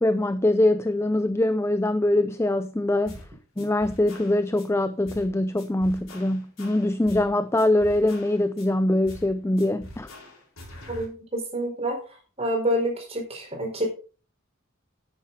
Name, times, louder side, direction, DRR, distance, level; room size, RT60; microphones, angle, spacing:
voice 1, 0.0-3.2 3.6-10.1, left 1 dB, 10° left, 0.4 m, -23 dB
sound 1, 3.1-3.3 3.6-4.7 5.1-5.3 5.6-7.3 7.6-8.7 9.1-9.3 9.6-11.1, left 1 dB, 70° left, 4.8 m, -44 dB
voice 2, 10.9-12.0 12.4-13.9, equal, 30° right, 4.5 m, -27 dB
10.5 x 9.4 x 4.1 m
head